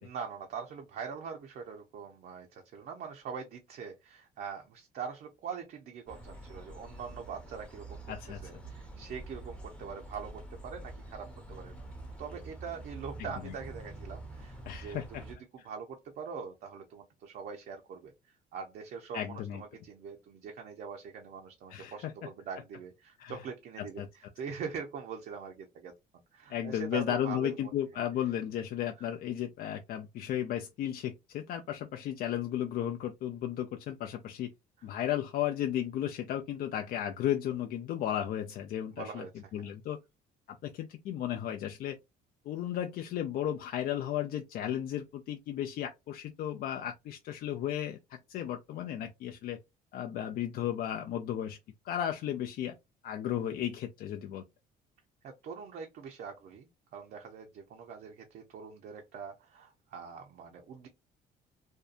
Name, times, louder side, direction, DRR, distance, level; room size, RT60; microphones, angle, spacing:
voice 1, 0.0-8.1 8.4-11.8 12.2-18.1 18.5-25.9 26.3-27.7 38.9-39.3 39.6-39.7 55.2-60.9, right 6 dB, 60° right, 0.6 m, -43 dB
sound 1, 6.1-15.3, right 2 dB, 5° left, 0.7 m, -46 dB
voice 2, 8.1-8.5 13.2-13.5 14.7-15.2 15.6-15.7 19.1-19.6 21.7-22.1 23.2-23.4 23.8-24.1 26.5-34.5 34.8-39.3 39.5-40.0 40.5-42.0 42.5-49.6 49.9-51.6 51.8-52.7 53.0-54.4, left 11 dB, 60° left, 0.4 m, -34 dB
2.6 x 2.2 x 2.4 m
cardioid pair, 110°, 17 cm